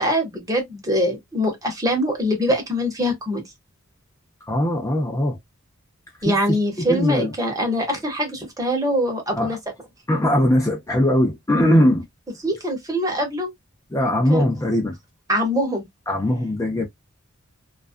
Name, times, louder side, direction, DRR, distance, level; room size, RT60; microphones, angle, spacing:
voice 1, 0.0-3.4 6.2-9.6 12.4-13.5 14.3-14.4 15.3-15.8, equal, 15° right, 0.9 m, -23 dB
voice 2, 4.5-5.4 6.2-7.3 9.4-9.6 10.1-12.0 13.9-15.0 16.1-16.8, left 1 dB, 15° left, 0.5 m, -20 dB
2.4 x 2.2 x 2.4 m
head